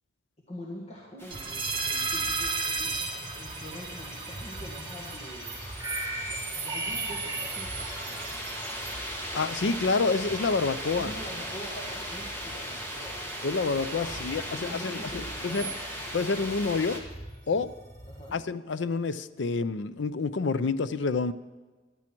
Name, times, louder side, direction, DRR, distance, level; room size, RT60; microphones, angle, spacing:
voice 1, 0.5-5.6 6.2-8.4 11.0-13.2 14.0-14.2 14.5-15.8 18.1-18.4, equal, 35° left, -3 dB, 1.8 m, -44 dB
sound 1, 1.2-17.0, equal, 15° left, 1.8 m, -39 dB
sound 2, 1.3-18.3, right 3 dB, 25° right, 2.6 m, -37 dB
voice 2, 9.3-11.1 13.4-15.0 15.4-15.7 16.1-17.0 17.5-17.7 18.3-21.3, left 4 dB, 70° left, 15 dB, 0.5 m, -28 dB
14.5 x 11.5 x 4.5 m, 1.3 s
head